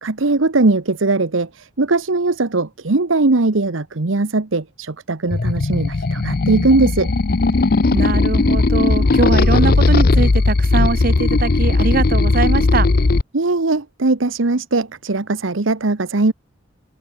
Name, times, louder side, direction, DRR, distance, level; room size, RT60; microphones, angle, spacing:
voice 1, 0.0-7.1 13.3-16.3, right 3 dB, 80° right, 1.1 m, -19 dB
sound 1, 5.3-13.2, left 3 dB, 50° left, 0.6 m, -16 dB
voice 2, 7.9-12.9, right 4 dB, 45° right, 0.6 m, -21 dB
head